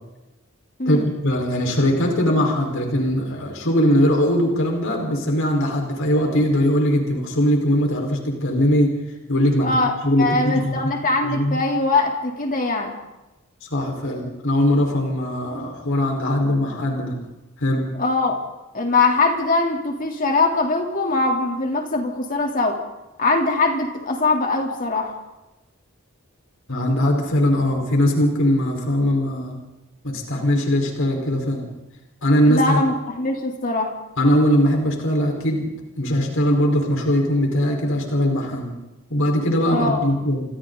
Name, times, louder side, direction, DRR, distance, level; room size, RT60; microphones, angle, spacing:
voice 1, 0.9-8.9 9.3-9.8 10.0-10.8 11.2-11.6 13.6-17.1 17.6-17.8 26.7-29.6 30.0-31.6 32.2-32.8 34.2-35.7 36.0-38.7 39.1-40.4, equal, 65° left, 1 dB, 4.7 m, -20 dB
voice 2, 9.6-12.9 18.0-18.4 18.7-22.8 23.2-25.2 32.5-33.9 39.7-40.0, left 3 dB, 40° left, 2 dB, 3.4 m, -22 dB
29.0 x 26.0 x 4.0 m, 1.0 s
head